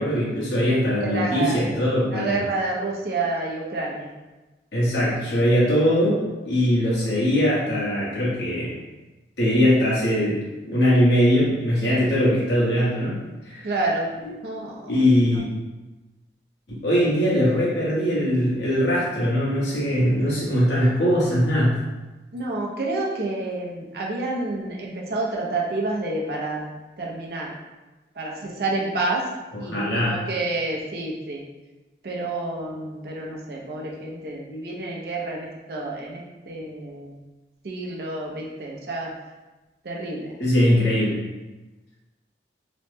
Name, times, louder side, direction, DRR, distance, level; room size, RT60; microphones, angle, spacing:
voice 1, 0.0-2.4 4.7-8.7 9.4-10.4 10.7-13.2 13.4-13.7 14.2-14.3 14.9-15.5 16.7-21.8 29.5-30.2 40.4-41.2, equal, 80° left, -7 dB, 1.1 m, -21 dB
voice 2, 1.0-1.6 2.1-4.1 13.6-14.2 14.4-14.9 22.3-27.5 28.2-29.2 29.6-31.4 32.0-37.2 37.6-39.1 39.8-40.3, right 2 dB, 60° right, -2 dB, 0.5 m, -29 dB
3.0 x 2.1 x 3.2 m, 1.1 s
head